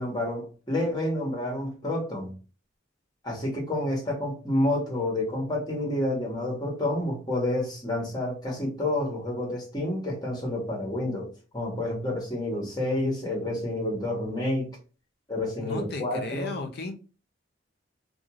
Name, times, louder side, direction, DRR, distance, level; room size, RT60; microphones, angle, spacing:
voice 1, 0.0-2.3 3.2-14.7 15.3-16.6, left 1 dB, 20° left, 1.1 m, -29 dB
voice 2, 15.6-16.9, left 3 dB, 55° left, 0.6 m, -35 dB
2.6 x 2.3 x 2.8 m
head